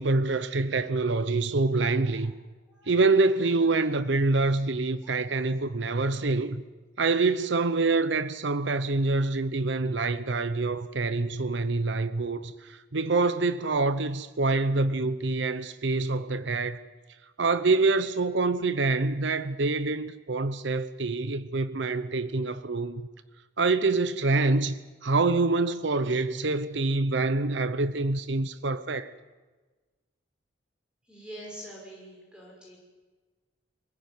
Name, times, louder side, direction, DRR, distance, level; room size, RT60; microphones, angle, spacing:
voice 1, 0.0-2.3 2.9-6.6 7.0-16.8 17.4-23.1 23.6-29.1, right 3 dB, 75° right, 0.8 m, -26 dB
voice 2, 31.1-32.8, right 1 dB, 5° right, 5.8 m, -45 dB
24.5 x 16.0 x 9.6 m
head